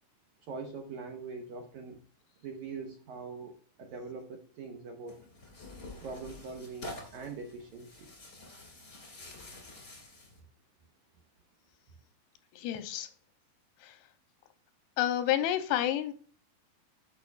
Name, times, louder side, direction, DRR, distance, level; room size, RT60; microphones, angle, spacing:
voice 1, 0.5-2.0 2.4-5.2 6.0-8.1, right 4 dB, 80° right, 4 dB, 1.7 m, -42 dB
Tearing, 5.1-10.4, left 1 dB, 30° left, 1.4 m, -48 dB
voice 2, 12.5-13.1 13.8-14.0 15.0-16.1, left 12 dB, 90° left, 9 dB, 2.6 m, -29 dB
11.0 x 6.6 x 2.3 m, 0.41 s
omnidirectional pair, 4.5 m